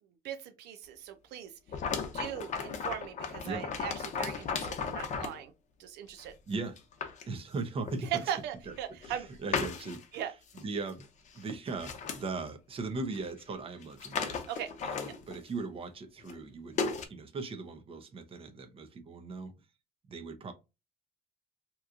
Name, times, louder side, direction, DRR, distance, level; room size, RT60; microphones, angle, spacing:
voice 1, 0.2-1.5 2.1-5.5 5.8-6.3 8.1-9.3 10.1-10.3 14.5-14.7, right 10 dB, 80° right, 0.5 m, -39 dB
sound 1, 1.7-5.4 6.2-6.3 6.8-7.2 7.9-8.0 8.7-9.2 9.5-10.2 10.5-10.6 10.9-11.1 11.4-12.2 13.1-13.2 13.5-13.6 13.8-15.5 16.2-16.4 16.8-17.1, left 6 dB, 45° left, 0.7 m, -35 dB
voice 2, 6.5-6.8 7.3-8.3 8.7-8.8 9.0-10.0 10.5-11.1 11.3-14.4 14.8-19.5 20.1-20.5, right 3 dB, 35° right, 0.7 m, -39 dB
2.9 x 2.3 x 3.6 m
cardioid pair, 110°, 17 cm